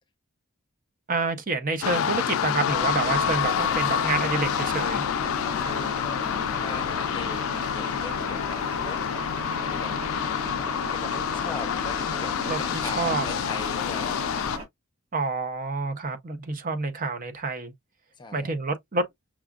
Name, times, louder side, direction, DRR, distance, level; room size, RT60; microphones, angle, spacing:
voice 1, 1.1-5.0 12.5-13.3 15.1-17.7 18.3-19.0, right 3 dB, 40° right, 0.7 m, -28 dB
sound 1, 1.8-14.6, left 9 dB, 70° left, 0.3 m, -28 dB
sound 2, 2.7-14.6, equal, 70° right, 1.7 m, -35 dB
voice 2, 5.5-9.0 9.6-10.0 10.9-14.2 18.2-18.5, left 3 dB, 20° left, 0.7 m, -40 dB
5.9 x 2.4 x 2.3 m
head